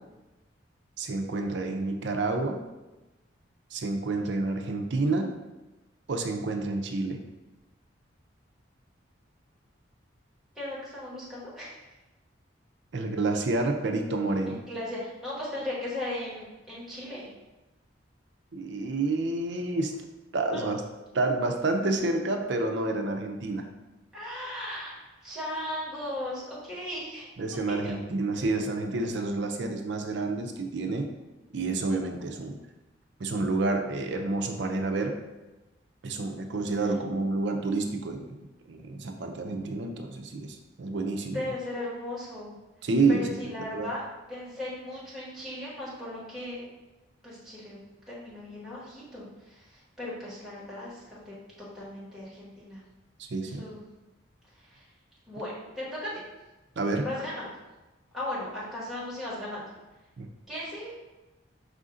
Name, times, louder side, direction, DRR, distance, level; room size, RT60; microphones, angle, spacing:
voice 1, 1.0-2.6 3.7-5.3 6.1-7.2 12.9-14.6 18.5-20.0 20.3-20.8 21.1-23.7 27.4-31.1 31.5-32.6 33.2-35.2 36.0-41.5 42.8-43.4 43.7-43.9 53.3-53.7 56.8-57.1 60.2-60.3, right 3 dB, 65° right, 4 dB, 0.5 m, -29 dB
voice 2, 10.5-11.8 14.5-17.3 20.5-20.7 24.1-25.0 25.2-27.3 41.3-42.5 43.1-44.0 44.3-46.6 47.2-47.8 48.1-49.7 50.0-51.3 51.7-52.8 53.6-53.8 54.7-54.8 55.3-56.1 57.0-57.5 58.1-59.6 60.5-60.9, left 1 dB, ahead, -8 dB, 1.3 m, -37 dB
4.9 x 2.6 x 3.7 m, 1.1 s
head